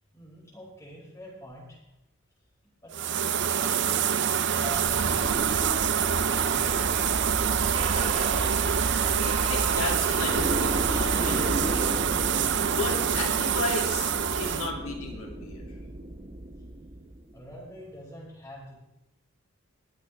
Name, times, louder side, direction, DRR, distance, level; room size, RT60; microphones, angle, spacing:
voice 1, 0.1-1.8 2.8-3.9 4.3-5.7 6.4-7.0 7.3-8.2 17.3-18.7, equal, 15° left, -6 dB, 5.6 m, -45 dB
sound 1, 2.9-14.7, right 8 dB, 55° right, 0.6 m, -26 dB
sound 2, 4.7-17.4, right 1 dB, 25° right, 0.8 m, -33 dB
voice 2, 8.6-11.8 12.7-15.6, left 2 dB, 70° left, 0 dB, 2.7 m, -34 dB
21.5 x 8.6 x 3.5 m, 0.91 s
head